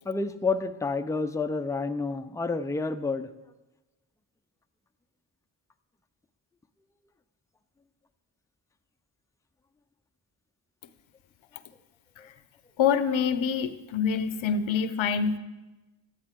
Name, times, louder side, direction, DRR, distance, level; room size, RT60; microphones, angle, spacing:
voice 1, 0.1-3.3 12.2-12.3, left 3 dB, 5° left, 8 dB, 0.5 m, -29 dB
voice 2, 12.8-15.4, left 7 dB, 80° left, 12 dB, 0.7 m, -26 dB
12.5 x 9.9 x 3.7 m, 1.1 s
cardioid pair, 45°, 46 cm